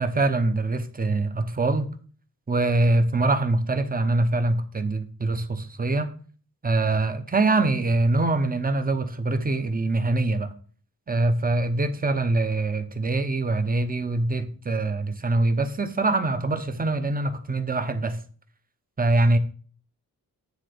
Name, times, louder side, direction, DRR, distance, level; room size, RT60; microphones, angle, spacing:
voice 1, 0.0-1.9 2.5-6.1 6.6-10.5 11.1-18.2 19.0-19.4, right 2 dB, 25° right, 9 dB, 0.8 m, -24 dB
9.8 x 3.8 x 6.6 m, 0.42 s
wide cardioid pair, 145°, 36 cm